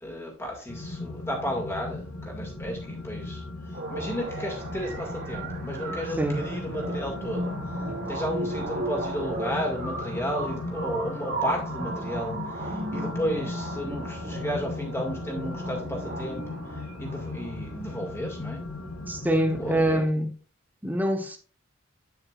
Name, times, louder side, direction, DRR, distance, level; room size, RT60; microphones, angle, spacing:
voice 1, 0.0-3.4 3.9-7.5 8.1-18.7 19.5-20.1, equal, 10° left, 2.1 m, -33 dB
sound 1, 0.7-20.0, left 2 dB, 85° left, 1.6 m, -37 dB
sound 2, 3.7-17.7, right 2 dB, 50° right, 2.0 m, -36 dB
voice 2, 19.1-20.3 20.8-21.4, right 1 dB, 10° right, 1.0 m, -25 dB
8.5 x 8.0 x 2.5 m
head